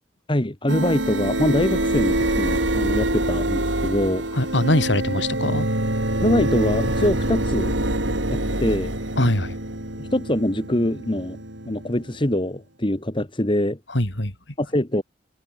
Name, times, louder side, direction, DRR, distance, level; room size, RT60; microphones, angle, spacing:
voice 1, 0.3-4.2 6.2-7.7 8.3-8.9 10.0-11.4 11.7-13.8 14.6-15.0, left 1 dB, 25° left, 1.8 m, -23 dB
sound 1, 0.7-12.3, right 1 dB, 80° right, 7.2 m, -25 dB
voice 2, 4.3-5.7 9.2-9.5 13.9-14.3, left 1 dB, 70° left, 5.1 m, -22 dB
head